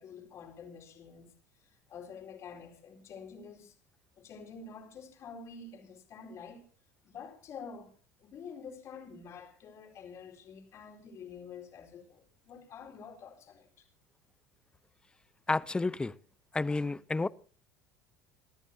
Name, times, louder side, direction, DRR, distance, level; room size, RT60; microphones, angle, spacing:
voice 1, 0.0-1.3 1.6-3.8 4.2-6.6 7.0-13.9, left 5 dB, 45° left, 4.4 m, -48 dB
voice 2, 15.5-16.1 16.5-17.3, left 3 dB, 15° left, 0.8 m, -30 dB
27.0 x 14.0 x 2.8 m
hypercardioid pair, 70°, 7 cm